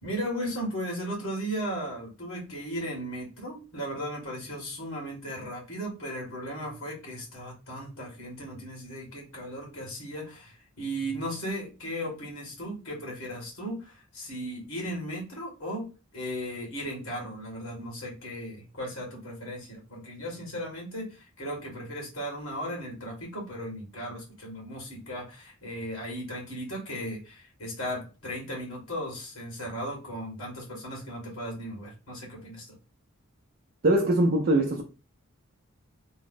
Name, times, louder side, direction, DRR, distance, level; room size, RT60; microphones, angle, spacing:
voice 1, 0.0-32.8, equal, 85° left, 1.9 m, -36 dB
voice 2, 33.8-34.8, right 1 dB, 45° right, 0.5 m, -22 dB
3.5 x 2.0 x 3.8 m
head